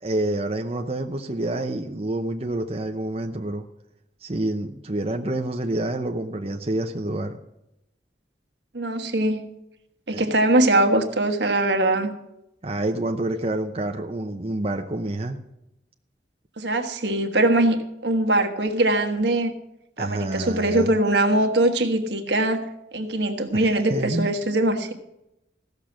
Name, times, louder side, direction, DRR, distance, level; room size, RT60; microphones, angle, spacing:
voice 1, 0.0-3.6 4.2-7.4 10.1-10.2 12.6-15.4 20.0-20.9 23.5-24.3, right 1 dB, 35° right, 3 dB, 0.8 m, -28 dB
voice 2, 8.7-9.4 10.1-12.1 16.6-19.5 20.0-22.6 22.9-24.9, right 1 dB, 75° right, 6 dB, 1.4 m, -22 dB
15.5 x 6.7 x 7.3 m, 0.86 s
head